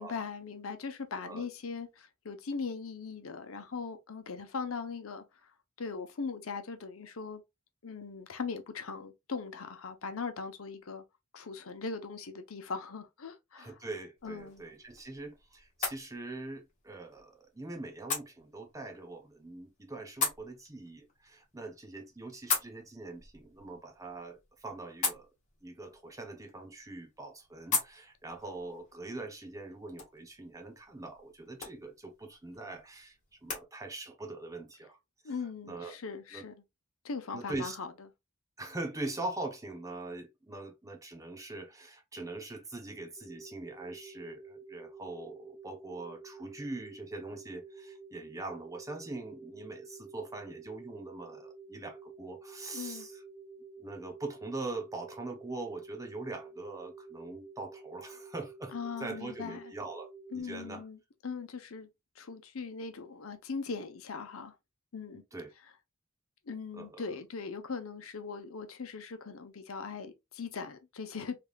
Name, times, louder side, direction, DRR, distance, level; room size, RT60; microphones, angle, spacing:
voice 1, 0.0-5.2 5.8-7.4 7.8-11.0 11.3-13.8 14.2-14.6 35.2-36.6 37.0-37.9 52.7-53.1 58.7-59.7 60.3-61.9 62.2-64.5 64.9-65.2 66.5-71.4, left 5 dB, 80° left, 0.8 m, -40 dB
voice 2, 13.5-25.3 25.6-33.2 33.4-35.0 35.2-35.3 35.7-36.0 36.3-36.5 37.3-37.8 38.6-53.2 53.8-60.8 65.3-65.5 66.7-67.1, right 2 dB, 15° right, 0.8 m, -42 dB
sound 1, 14.2-33.6, left 5 dB, 35° left, 1.9 m, -41 dB
sound 2, 43.2-60.4, right 4 dB, 20° left, 0.7 m, -50 dB
3.6 x 3.3 x 2.3 m
head